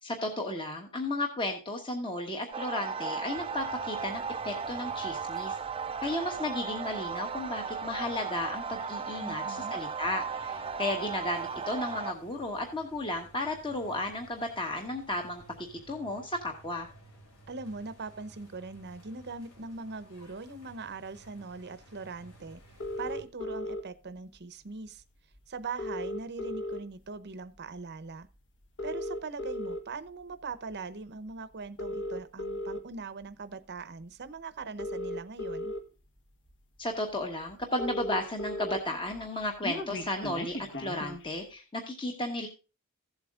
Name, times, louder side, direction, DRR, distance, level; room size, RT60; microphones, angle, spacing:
voice 1, 0.0-5.6 6.0-16.9 36.8-42.5, left 1 dB, 25° left, 1.2 m, -34 dB
sound 1, 2.5-12.1, right 5 dB, 25° right, 0.5 m, -36 dB
sound 2, 3.3-23.3, right 1 dB, 70° left, 3.2 m, -56 dB
voice 2, 9.2-9.8 17.5-22.6 23.0-25.0 25.5-28.3 28.8-35.7, right 4 dB, 50° right, 0.8 m, -41 dB
sound 3, 22.8-23.8 25.0-25.1 25.3-25.4 25.6-27.1 27.6-27.8 28.6-29.8 30.5-30.7 31.6-32.8 34.0-34.1 34.6-35.8 36.5-36.6 36.9-37.0 37.2-37.3 37.5-38.8 39.1-41.3, left 1 dB, 55° left, 1.4 m, -36 dB
15.5 x 8.0 x 2.4 m
head